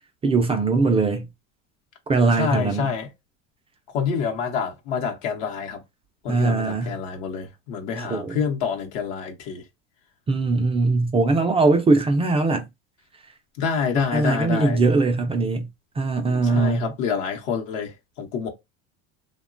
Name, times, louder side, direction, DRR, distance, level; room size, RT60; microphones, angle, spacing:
voice 1, 0.2-1.3 2.1-2.9 6.3-7.0 8.0-8.4 10.3-12.7 14.1-15.7 16.0-16.9, right 3 dB, 15° right, 0.3 m, -21 dB
voice 2, 2.3-3.1 3.9-5.8 6.2-9.6 13.6-14.9 16.2-18.5, left 6 dB, 80° left, 0.9 m, -27 dB
2.9 x 2.2 x 2.4 m
supercardioid pair, 110°, 37 cm